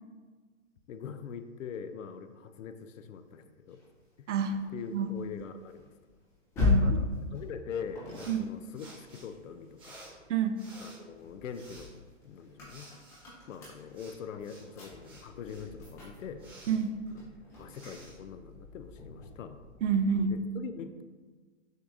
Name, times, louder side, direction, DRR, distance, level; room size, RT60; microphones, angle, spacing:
voice 1, 0.9-3.8 4.2-4.3 4.7-5.9 7.3-10.0 10.8-12.9 13.5-16.4 17.6-19.6 20.3-21.0, left 7 dB, 75° left, 9 dB, 0.5 m, -43 dB
sound 1, 3.7-10.2 10.7-20.5, left 3 dB, 10° left, 0.4 m, -37 dB
voice 2, 4.3-4.6 4.9-5.1 6.6-7.1 8.3-8.5 10.3-10.6 16.7-17.0 19.8-20.4, right 6 dB, 65° right, 9 dB, 0.5 m, -28 dB
sound 2, 8.1-19.0, right 1 dB, 15° right, 0.9 m, -55 dB
6.2 x 2.3 x 2.7 m, 1.4 s
hypercardioid pair, 135°, 39 cm